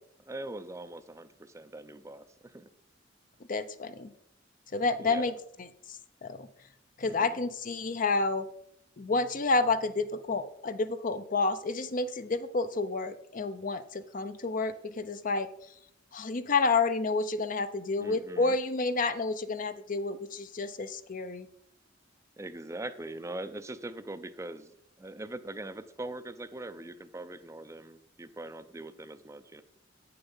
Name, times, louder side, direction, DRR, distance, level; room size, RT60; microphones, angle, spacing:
voice 1, 0.2-2.7 5.0-5.4 7.0-7.4 18.0-18.6 22.4-24.7 25.0-29.6, right 2 dB, 15° right, 11 dB, 0.5 m, -42 dB
voice 2, 3.5-4.1 4.7-5.3 5.6-6.5 7.0-8.5 9.0-15.5 16.1-21.5, left 3 dB, 45° left, 11 dB, 0.6 m, -30 dB
9.1 x 6.8 x 5.5 m, 0.74 s
head